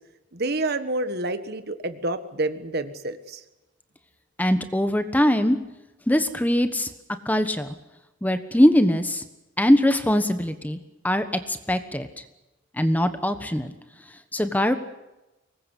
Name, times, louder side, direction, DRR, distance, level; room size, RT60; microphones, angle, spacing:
voice 1, 0.3-3.4, right 2 dB, 55° right, 10 dB, 1.6 m, -28 dB
voice 2, 4.4-5.6 6.1-6.9 7.2-7.7 8.2-9.2 9.6-10.8 11.0-12.1 12.8-13.7 14.3-14.7, left 1 dB, 10° left, 9 dB, 1.3 m, -21 dB
24.5 x 20.5 x 8.4 m, 0.97 s
head